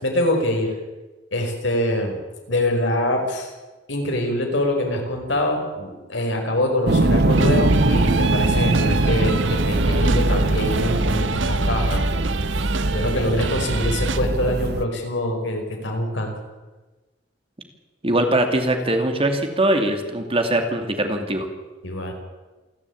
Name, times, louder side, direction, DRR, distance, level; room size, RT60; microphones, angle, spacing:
voice 1, 0.0-0.7 1.3-2.2 2.5-3.5 3.9-12.1 12.9-16.4 21.8-22.1, left 1 dB, 70° left, 3 dB, 5.3 m, -24 dB
sound 1, 6.9-14.8, right 2 dB, 60° right, 1.0 m, -21 dB
sound 2, 7.3-14.2, right 4 dB, 85° right, 1.4 m, -29 dB
voice 2, 18.0-21.5, right 1 dB, 30° right, 5 dB, 2.7 m, -21 dB
28.0 x 12.0 x 8.7 m, 1.2 s
head